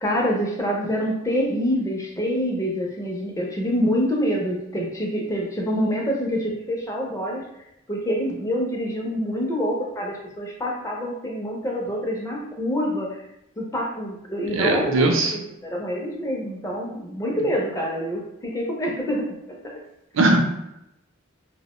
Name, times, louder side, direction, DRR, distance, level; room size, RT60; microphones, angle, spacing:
voice 1, 0.0-7.5 7.9-13.2 13.6-19.3 19.6-19.8, equal, 15° left, -1 dB, 0.4 m, -26 dB
voice 2, 14.6-15.3 20.2-20.5, right 2 dB, 70° right, 2 dB, 0.5 m, -19 dB
2.4 x 2.0 x 2.9 m, 0.86 s
head